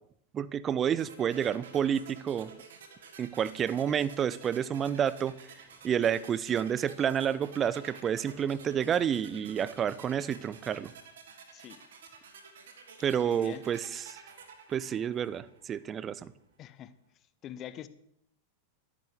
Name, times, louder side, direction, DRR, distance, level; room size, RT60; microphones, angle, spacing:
voice 1, 0.3-2.5 3.2-5.4 5.8-10.9 13.0-14.2 14.7-16.3, right 8 dB, 25° right, 18 dB, 0.8 m, -29 dB
sound 1, 1.0-15.9, right 5 dB, 60° right, 2.9 m, -52 dB
voice 2, 13.2-13.6 16.6-16.9 17.4-17.9, left 11 dB, 30° left, 14 dB, 1.1 m, -43 dB
13.5 x 10.5 x 8.4 m, 0.75 s
figure-of-eight pair, 90°, 0 cm